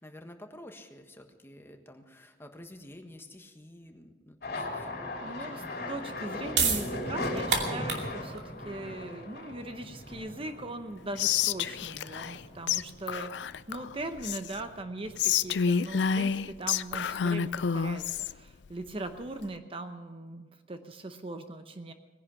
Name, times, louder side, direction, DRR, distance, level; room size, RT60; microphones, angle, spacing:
voice 1, 0.0-4.9 5.2-5.8, left 1 dB, 15° left, 5 dB, 1.3 m, -50 dB
sound 1, 4.4-13.1 13.5-14.3 14.6-15.5, left 1 dB, 60° left, 3.0 m, -38 dB
voice 2, 5.2-18.0 18.3-21.9, right 2 dB, 30° right, 8 dB, 0.8 m, -40 dB
sound 2, 6.4-12.8, right 5 dB, 70° right, 2.5 m, -34 dB
Whispering, 11.2-12.4 12.7-12.8 13.1-14.6 15.2-18.3, left 7 dB, 80° left, 0.4 m, -29 dB
19.0 x 10.5 x 5.8 m, 1.3 s
head